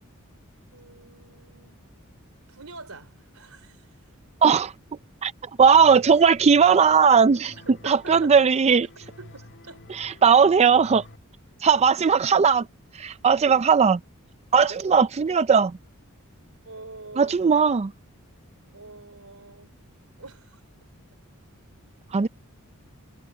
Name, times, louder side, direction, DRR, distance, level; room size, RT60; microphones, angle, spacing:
voice 1, 0.7-1.7 2.5-3.9 7.6-8.6 9.2-9.9 10.3-10.4 14.6-14.7 16.6-17.3 18.7-19.8 20.2-20.6, right 3 dB, 80° right, 3.8 m, -44 dB
voice 2, 4.4-4.7 5.2-5.3 5.6-7.6 7.9-8.9 9.9-11.0 11.6-12.7 12.9-14.0 14.5-15.7 17.2-17.9 22.1-22.3, right 6 dB, 30° right, 0.4 m, -18 dB
sound 1, 5.6-11.2, left 1 dB, 55° left, 1.8 m, -49 dB
head